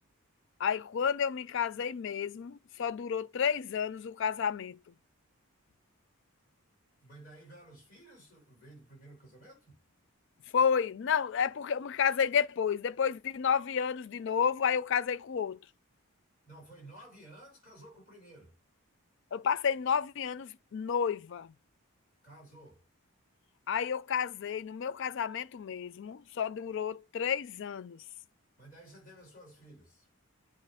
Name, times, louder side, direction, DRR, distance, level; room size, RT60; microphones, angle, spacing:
voice 1, 0.6-4.8 10.5-15.6 19.3-21.5 23.7-28.0, left 7 dB, 55° left, 0.3 m, -31 dB
voice 2, 7.0-9.7 16.4-18.6 22.2-22.8 28.6-30.1, right 1 dB, 35° left, 4.6 m, -53 dB
9.0 x 3.2 x 3.5 m
head